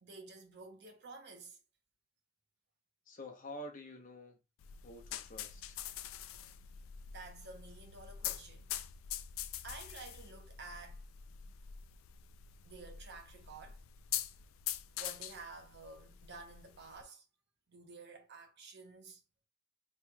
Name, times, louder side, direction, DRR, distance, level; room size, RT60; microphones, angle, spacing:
voice 1, 0.0-1.6 6.2-6.3 7.1-8.7 9.6-11.1 12.6-13.8 14.9-17.3 17.7-19.2, right 3 dB, 55° right, 0.8 m, -51 dB
voice 2, 3.1-4.4 4.8-5.8, left 1 dB, 40° left, 0.8 m, -48 dB
sound 1, 4.6-17.0, left 11 dB, 75° left, 0.3 m, -44 dB
4.3 x 3.1 x 2.2 m
head